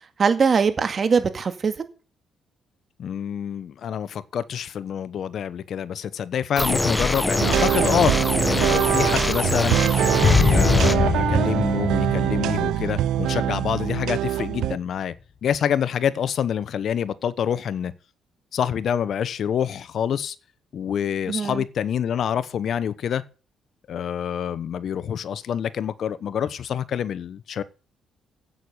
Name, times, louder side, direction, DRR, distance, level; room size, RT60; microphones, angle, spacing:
voice 1, 0.2-1.8 21.3-21.6, right 5 dB, 45° right, 2.1 m, -21 dB
voice 2, 3.0-8.1 8.5-9.8 10.5-15.1 15.4-17.9 18.5-20.4 20.7-23.2 23.9-27.6, left 8 dB, 60° left, 0.9 m, -26 dB
sound 1, 6.6-11.0, left 1 dB, 10° left, 1.1 m, -24 dB
sound 2, 7.4-14.8, right 12 dB, 85° right, 0.6 m, -23 dB
sound 3, 10.2-13.4 13.7-13.9, left 5 dB, 40° left, 1.2 m, -22 dB
9.3 x 8.7 x 8.0 m
cardioid pair, 90°, 0 cm